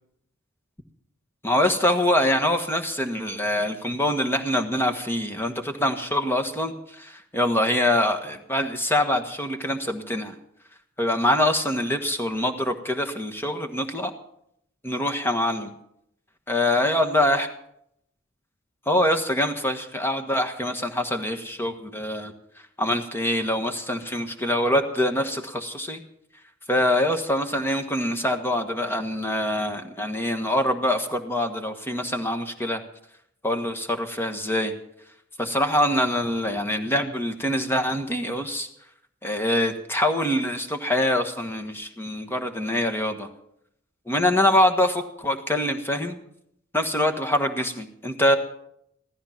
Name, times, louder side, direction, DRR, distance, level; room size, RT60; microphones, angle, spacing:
voice 1, 1.4-10.3 11.0-14.1 14.8-15.7 16.5-17.5 18.9-22.3 22.8-26.0 26.7-32.8 33.4-34.7 35.4-38.7 39.2-43.3 44.1-46.2 46.7-48.4, left 1 dB, 10° left, 6 dB, 1.4 m, -24 dB
16.5 x 13.5 x 5.9 m, 0.75 s
head